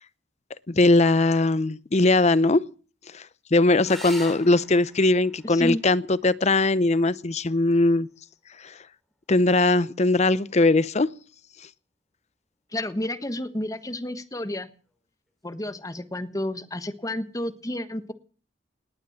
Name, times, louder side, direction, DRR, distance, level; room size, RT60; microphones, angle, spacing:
voice 1, 0.7-2.6 3.1-3.2 3.5-8.1 9.3-11.1, left 2 dB, 35° left, 17 dB, 0.7 m, -20 dB
sound 1, 3.8-8.9 10.8-11.4 14.8-15.0 15.3-15.4, equal, ahead, 3.6 m, -46 dB
voice 2, 5.4-5.8 12.7-14.7 15.4-18.1, left 1 dB, 20° left, 10 dB, 1.4 m, -31 dB
19.5 x 10.5 x 7.3 m, 0.40 s
head